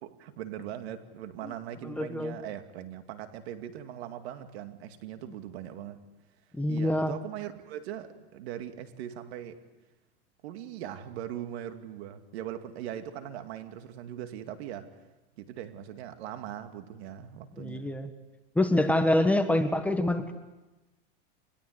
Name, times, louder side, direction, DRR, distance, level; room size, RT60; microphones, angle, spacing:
voice 1, 0.0-6.0 6.7-9.6 10.4-14.9 15.4-17.9, right 10 dB, 75° right, 2.4 m, -40 dB
voice 2, 1.8-2.3 6.6-7.1 17.6-18.1 18.5-20.2, left 1 dB, 5° left, 1.5 m, -26 dB
25.5 x 21.5 x 8.2 m
supercardioid pair, 135°, 32 cm